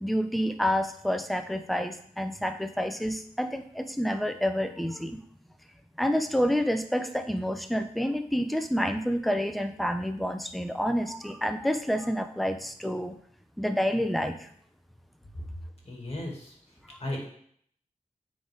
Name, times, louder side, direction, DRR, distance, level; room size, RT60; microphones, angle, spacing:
voice 1, 0.0-5.2 6.0-13.2 13.6-14.5, equal, ahead, 7 dB, 0.6 m, -28 dB
voice 2, 15.9-16.5 17.0-17.3, left 1 dB, 50° left, -1 dB, 2.2 m, -35 dB
9.0 x 4.0 x 3.5 m, 0.63 s
wide cardioid pair, 65°, 14 cm